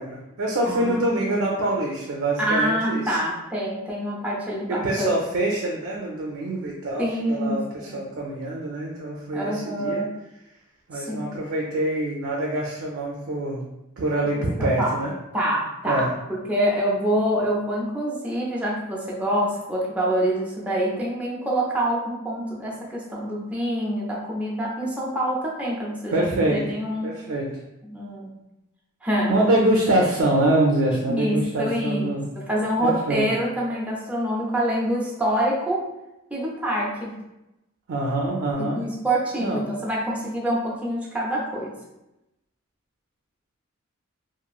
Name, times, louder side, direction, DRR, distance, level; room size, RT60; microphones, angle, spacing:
voice 1, 0.0-3.2 4.7-10.0 10.9-13.6 14.0-15.1 15.9-16.1 26.1-26.6 27.0-27.5 29.3-32.3 32.8-33.3 37.9-38.8 39.4-39.6, right 1 dB, 60° right, -2 dB, 0.4 m, -25 dB
voice 2, 0.7-1.0 2.4-5.2 7.0-8.0 9.3-10.1 10.9-11.3 14.4-15.0 15.3-27.2 27.8-28.3 29.0-29.5 31.1-35.9 36.3-37.2 38.6-41.7, right 1 dB, 5° right, -5 dB, 0.6 m, -26 dB
2.9 x 2.5 x 2.3 m, 0.93 s
head